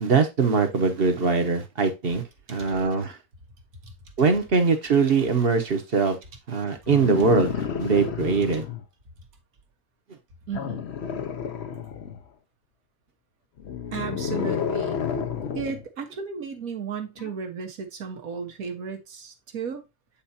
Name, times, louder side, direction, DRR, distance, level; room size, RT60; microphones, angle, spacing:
voice 1, 0.0-2.2 2.5-3.2 4.2-6.2 6.5-8.6, right 4 dB, 45° right, 1.2 m, -22 dB
sound 1, 6.9-8.8 10.5-12.3 13.6-15.8 17.2-17.3, left 7 dB, 55° left, 1.0 m, -30 dB
voice 2, 10.5-10.8 13.9-15.0 15.5-19.8, right 6 dB, 80° right, 1.7 m, -34 dB
8.7 x 4.5 x 2.8 m
omnidirectional pair, 1.5 m